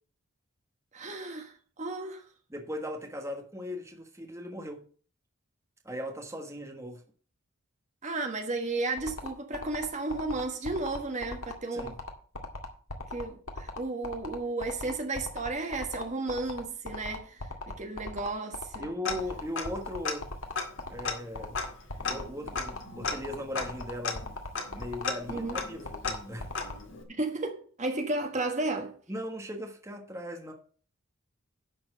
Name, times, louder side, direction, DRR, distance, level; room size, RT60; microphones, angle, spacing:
voice 1, 0.9-2.2 8.0-11.9 13.1-18.9 25.3-25.6 27.1-29.0, right 2 dB, 35° right, 1.4 m, -33 dB
voice 2, 2.5-4.8 5.8-7.0 11.7-11.9 18.8-20.3 20.9-21.6 22.0-24.2 24.7-26.5 29.1-30.5, equal, 15° right, 1.4 m, -38 dB
sound 1, 9.0-26.7, left 2 dB, 90° left, 2.0 m, -38 dB
Tick-tock, 19.0-19.8 20.0-20.1 20.5-27.0, left 4 dB, 65° left, 2.1 m, -36 dB
11.5 x 4.5 x 7.5 m
head